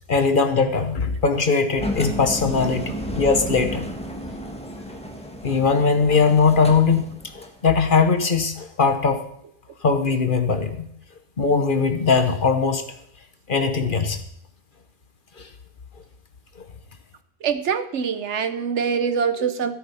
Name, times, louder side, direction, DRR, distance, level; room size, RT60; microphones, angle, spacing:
voice 1, 0.1-3.9 4.9-5.0 5.4-7.0 7.3-9.2 9.8-10.9 11.4-12.8 13.5-14.2, left 4 dB, 45° left, 8 dB, 1.1 m, -20 dB
Engine, 1.8-7.6, equal, 5° left, 1.4 m, -32 dB
voice 2, 17.4-19.8, right 6 dB, 65° right, 11 dB, 1.1 m, -24 dB
13.5 x 8.3 x 5.5 m, 0.72 s
omnidirectional pair, 1.3 m